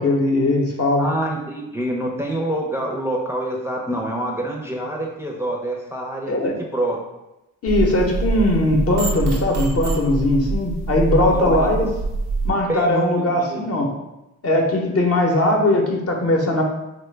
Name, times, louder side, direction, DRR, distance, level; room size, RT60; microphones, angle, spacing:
voice 1, 0.0-1.1 6.3-6.5 7.6-11.9 12.4-13.9 14.4-16.6, left 1 dB, 45° left, 0 dB, 0.7 m, -19 dB
voice 2, 1.0-6.3 6.6-7.0 11.3-11.7 12.7-13.6, right 1 dB, 10° right, -1 dB, 0.5 m, -26 dB
sound 1, 7.7-12.5, right 3 dB, 75° right, 0.6 m, -25 dB
3.2 x 2.1 x 3.2 m, 0.95 s
supercardioid pair, 55°, 33 cm